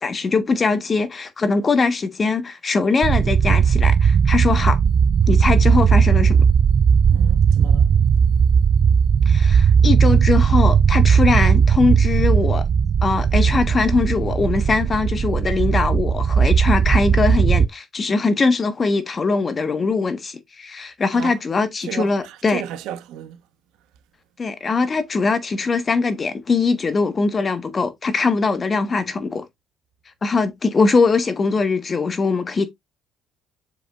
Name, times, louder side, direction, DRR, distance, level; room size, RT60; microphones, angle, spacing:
voice 1, 0.0-4.8 5.3-6.4 9.2-12.7 13.0-22.6 24.4-29.5 30.2-32.7, left 4 dB, 35° left, 1.4 m, -21 dB
sound 1, 3.0-17.7, right 7 dB, 50° right, 0.3 m, -17 dB
voice 2, 7.1-7.9 21.1-21.4 21.8-23.4, right 10 dB, 80° right, 1.1 m, -33 dB
7.0 x 5.7 x 2.5 m
supercardioid pair, 75°, 0 cm